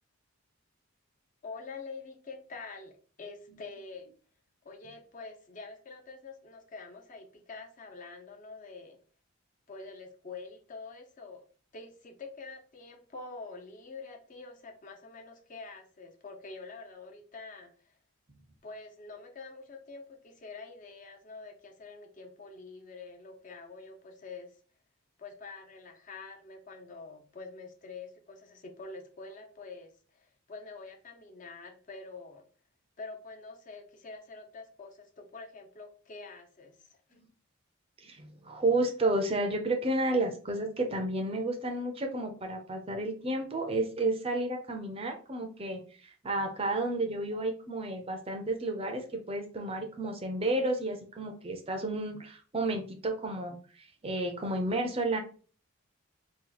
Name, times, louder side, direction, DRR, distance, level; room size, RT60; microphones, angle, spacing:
voice 1, 1.4-4.1 4.6-9.0 9.7-11.5 11.7-17.9 18.6-24.5 25.2-32.5 33.0-37.0, left 3 dB, 35° left, 4 dB, 0.5 m, -46 dB
voice 2, 38.0-55.2, right 2 dB, 25° right, 4 dB, 0.5 m, -31 dB
2.8 x 2.3 x 3.9 m, 0.40 s
head